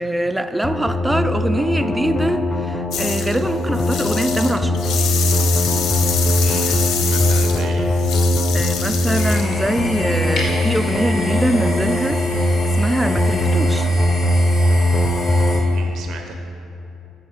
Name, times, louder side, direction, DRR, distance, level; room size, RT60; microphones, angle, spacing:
voice 1, 0.0-4.8 8.5-12.5 12.8-13.9, right 1 dB, 10° right, 10 dB, 0.4 m, -23 dB
sound 1, 0.6-15.6, left 1 dB, 30° left, 0.8 m, -20 dB
sound 2, 2.9-3.4 3.7-9.5, left 7 dB, 85° left, 0.7 m, -25 dB
voice 2, 6.4-6.7 7.0-7.9 15.7-16.3, right 6 dB, 70° right, 4 dB, 0.7 m, -35 dB
sound 3, 9.1-15.6, right 1 dB, 65° left, 2.1 m, -27 dB
13.0 x 4.6 x 5.6 m, 2.8 s
cardioid pair, 105°, 0 cm